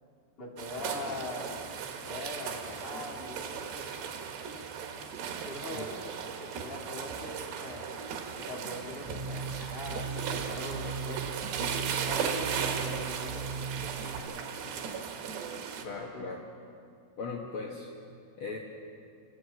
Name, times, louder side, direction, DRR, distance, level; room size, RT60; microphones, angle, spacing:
voice 1, 0.4-1.5 2.0-3.9 5.4-7.9 8.4-11.5 12.0-14.2 15.8-16.3, left 1 dB, 15° left, -1 dB, 2.4 m, -42 dB
sound 1, 0.6-15.8, right 7 dB, 85° right, 3.7 m, -37 dB
sound 2, 9.1-14.2, right 5 dB, 5° right, 4.9 m, -38 dB
voice 2, 15.8-16.4 17.2-17.9 18.4-18.6, left 4 dB, 60° left, -1 dB, 1.4 m, -38 dB
29.0 x 14.5 x 7.9 m, 2.3 s
omnidirectional pair, 4.7 m